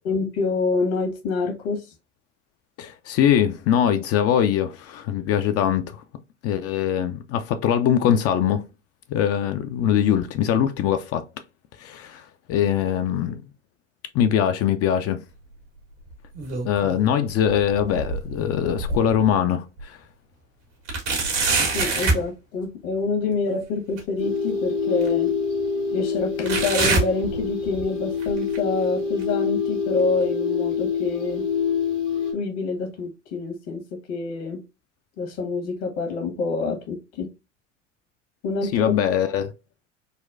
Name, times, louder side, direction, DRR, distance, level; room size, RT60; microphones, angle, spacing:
voice 1, 0.0-1.8 21.7-25.3 25.9-31.4 32.3-33.8 34.1-34.6 35.2-37.3 38.4-38.9, left 4 dB, 65° left, 1.4 m, -26 dB
voice 2, 2.8-6.0 6.4-8.7 9.1-11.2 11.8-13.4 14.1-15.2 16.6-20.0 38.7-39.5, left 9 dB, 45° left, 0.4 m, -22 dB
sound 1, 16.1-17.0 17.4-19.3 19.8-19.9 20.9-22.3 24.0-24.1 25.0-25.1 26.5-27.8 28.2-28.6 29.2-29.3 30.2-30.3, right 3 dB, 80° right, 1.4 m, -25 dB
sound 2, 24.2-32.3, left 6 dB, 85° left, 1.5 m, -26 dB
4.0 x 2.2 x 2.5 m
hypercardioid pair, 70°, 36 cm